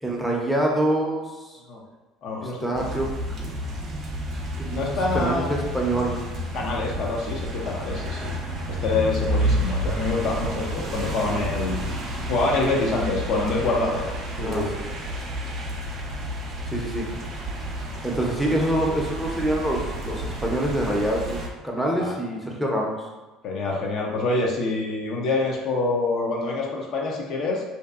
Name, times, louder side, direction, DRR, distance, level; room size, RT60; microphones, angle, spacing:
voice 1, 0.0-1.6 2.4-3.1 3.4-3.6 4.6-4.8 5.1-6.2 7.9-8.0 14.4-14.9 16.7-17.0 18.0-23.0, right 1 dB, ahead, -2 dB, 0.6 m, -26 dB
voice 2, 2.2-2.8 4.7-5.5 6.5-8.3 8.7-11.8 12.3-14.0 14.4-14.7 22.0-22.1 23.4-27.6, left 3 dB, 60° left, -1 dB, 0.5 m, -26 dB
sound 1, 2.7-21.5, equal, 50° right, 0.5 m, -30 dB
2.6 x 2.2 x 2.4 m, 1.2 s
hypercardioid pair, 75°, 0 cm